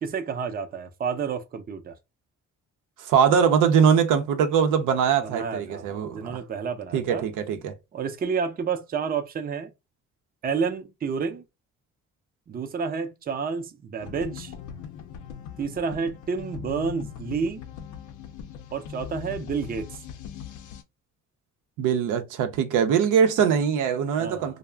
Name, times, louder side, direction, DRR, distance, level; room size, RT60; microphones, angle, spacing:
voice 1, 0.0-2.0 5.2-7.2 7.9-9.7 10.4-11.4 12.5-14.5 15.6-17.6 18.7-20.0 24.2-24.6, right 5 dB, 30° right, 0.5 m, -30 dB
voice 2, 3.0-6.4 6.9-7.7 21.8-24.6, right 7 dB, 85° right, 0.6 m, -22 dB
sound 1, 14.0-20.8, left 8 dB, 75° left, 0.6 m, -40 dB
2.3 x 2.0 x 3.2 m
cardioid pair, 90°, 30 cm